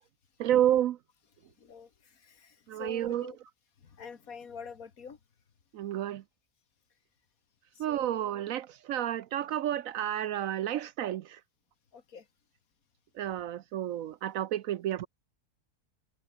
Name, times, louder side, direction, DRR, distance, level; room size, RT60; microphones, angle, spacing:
voice 1, 0.4-1.0 2.7-3.2 5.7-6.2 7.8-11.2 13.2-15.1, right 11 dB, 70° right, 0.9 m, -30 dB
voice 2, 1.4-3.4 3.8-5.2 7.7-8.2 11.9-12.3, left 6 dB, 65° left, 2.1 m, -47 dB
omnidirectional pair, 1.6 m